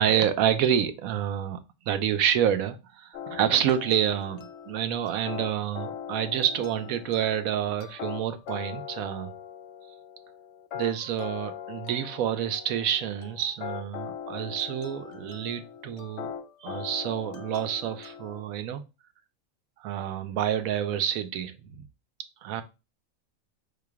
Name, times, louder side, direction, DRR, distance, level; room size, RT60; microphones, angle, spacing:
voice 1, 0.0-9.3 10.7-16.3 16.6-18.8 19.8-21.8 22.4-22.6, right 9 dB, 90° right, 1.1 m, -28 dB
sound 1, 3.1-18.4, left 9 dB, 65° left, 0.8 m, -41 dB
5.0 x 2.3 x 4.6 m
omnidirectional pair, 1.4 m